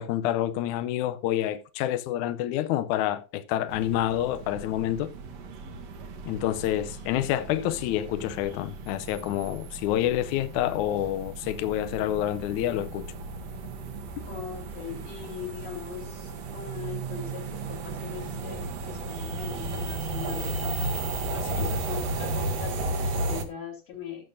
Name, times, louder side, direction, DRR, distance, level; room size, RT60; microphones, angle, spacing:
voice 1, 0.0-5.1 6.3-13.1 14.2-14.3 21.6-21.7, left 12 dB, 85° left, 1.7 m, -28 dB
sound 1, 3.7-23.5, right 2 dB, 65° right, 1.8 m, -34 dB
voice 2, 14.3-21.0 21.3-24.3, left 7 dB, 55° left, 2.6 m, -41 dB
17.5 x 6.6 x 2.6 m
omnidirectional pair, 4.1 m